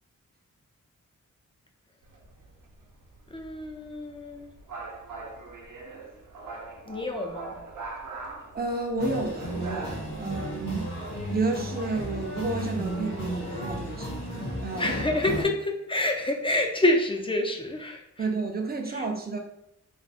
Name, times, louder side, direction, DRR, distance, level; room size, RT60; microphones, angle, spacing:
sound 1, 2.0-10.5, right 3 dB, 80° right, 0.8 m, -42 dB
voice 1, 3.3-4.5 6.9-7.6 10.2-10.5 14.8-18.3 18.9-19.1, left 1 dB, 15° left, 2 dB, 0.5 m, -28 dB
voice 2, 8.5-10.9 11.3-14.9 18.2-19.4, right 3 dB, 30° right, 2 dB, 0.6 m, -31 dB
sound 2, 9.0-15.4, equal, 60° left, 1.3 m, -34 dB
3.4 x 2.2 x 4.1 m, 0.78 s
wide cardioid pair, 130°, 31 cm